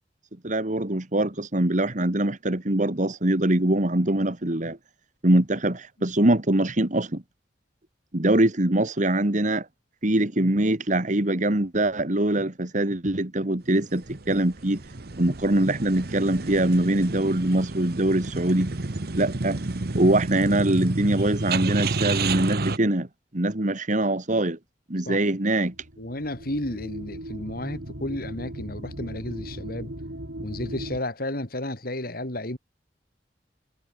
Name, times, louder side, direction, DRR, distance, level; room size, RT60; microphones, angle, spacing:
voice 1, 0.4-4.8 5.2-7.2 8.1-9.7 10.0-14.8 15.2-18.7 19.2-19.6 19.9-23.1 23.3-24.6 24.9-25.7, right 1 dB, 45° right, 2.2 m, -23 dB
sound 1, 13.9-22.8, right 3 dB, 65° right, 1.2 m, -30 dB
sound 2, 25.6-31.0, right 1 dB, 85° right, 4.1 m, -38 dB
voice 2, 26.0-29.9 30.4-32.6, left 1 dB, 60° left, 5.1 m, -32 dB
head